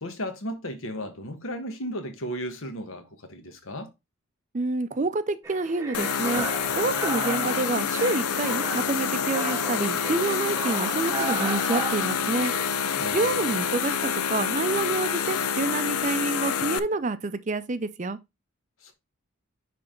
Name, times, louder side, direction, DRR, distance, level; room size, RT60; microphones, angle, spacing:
voice 1, 0.0-3.9 13.0-13.4 18.8-18.9, equal, 70° left, 1.3 m, -35 dB
voice 2, 4.5-6.5 6.7-12.5 13.1-14.0 14.3-18.2, right 3 dB, 35° right, 0.5 m, -28 dB
sound 1, 5.4-5.7 6.0-6.1 6.4-10.7, equal, 35° left, 2.0 m, -52 dB
sound 2, 5.4-12.7, right 3 dB, 15° right, 0.8 m, -35 dB
sound 3, 5.9-16.8, left 7 dB, 90° left, 0.5 m, -27 dB
9.6 x 3.4 x 3.7 m
head